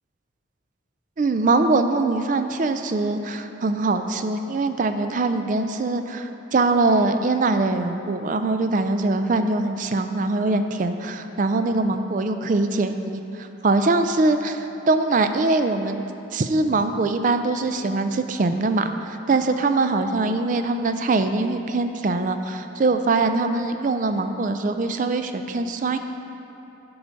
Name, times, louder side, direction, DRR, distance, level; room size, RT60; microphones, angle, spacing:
voice 1, 1.2-16.0 16.3-26.0, right 3 dB, 40° right, 8 dB, 0.4 m, -22 dB
10.5 x 4.8 x 5.2 m, 2.9 s
head